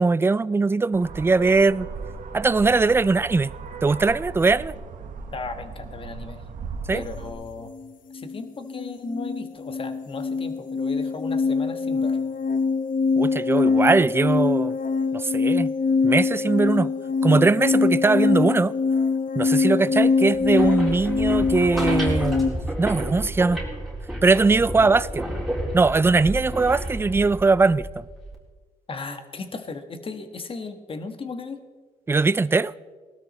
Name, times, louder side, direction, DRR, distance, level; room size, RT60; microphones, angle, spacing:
voice 1, 0.0-1.9 2.3-3.5 3.8-4.7 6.9-7.0 13.2-14.7 15.1-15.7 16.0-16.9 17.2-18.7 19.4-23.6 24.2-25.3 25.7-28.0 32.1-32.7, right 3 dB, 15° right, 0.3 m, -20 dB
sound 1, 0.9-7.3, right 4 dB, 70° right, 1.3 m, -37 dB
voice 2, 5.3-6.4 6.9-7.7 8.1-12.2 28.9-31.6, left 3 dB, 40° left, 1.4 m, -36 dB
sound 2, 7.7-7.9 8.1-22.5, left 4 dB, 70° left, 0.9 m, -23 dB
sound 3, 20.3-28.4, right 1 dB, ahead, 3.8 m, -31 dB
18.5 x 12.5 x 4.2 m
cardioid pair, 95°, 14 cm